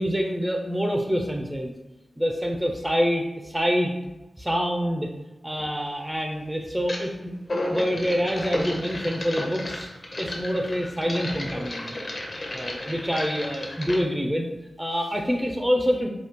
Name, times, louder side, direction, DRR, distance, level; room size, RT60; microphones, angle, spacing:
voice 1, 0.0-1.7 2.2-3.9 4.4-5.1 5.4-7.3 7.7-9.9 10.2-11.9 12.5-14.5 14.8-16.1, equal, 5° right, 2 dB, 0.4 m, -26 dB
sound 1, 5.5-5.7 6.8-7.1 7.4-14.0, left 1 dB, 40° left, 0.7 m, -33 dB
4.9 x 2.7 x 2.9 m, 1.0 s
wide cardioid pair, 140°, 0 cm